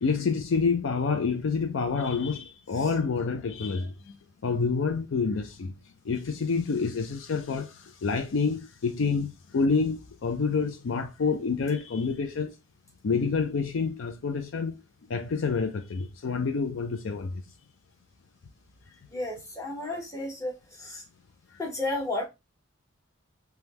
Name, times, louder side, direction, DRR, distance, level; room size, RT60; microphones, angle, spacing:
voice 1, 0.0-4.2 4.4-5.7 6.0-12.5 13.0-14.8 15.1-17.3, left 4 dB, 70° left, 0.4 m, -28 dB
voice 2, 19.1-21.0 21.6-22.3, left 2 dB, 15° left, 1.0 m, -32 dB
3.5 x 2.2 x 2.8 m
head